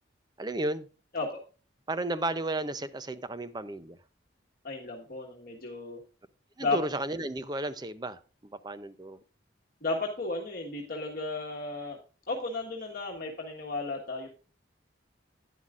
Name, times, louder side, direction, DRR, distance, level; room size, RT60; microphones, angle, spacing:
voice 1, 0.4-0.9 1.9-4.0 6.6-9.2, right 2 dB, 20° right, 0.6 m, -33 dB
voice 2, 4.6-6.0 6.6-6.8 9.8-12.0 12.3-14.3, left 3 dB, 50° left, 1.5 m, -34 dB
11.5 x 10.0 x 2.5 m
head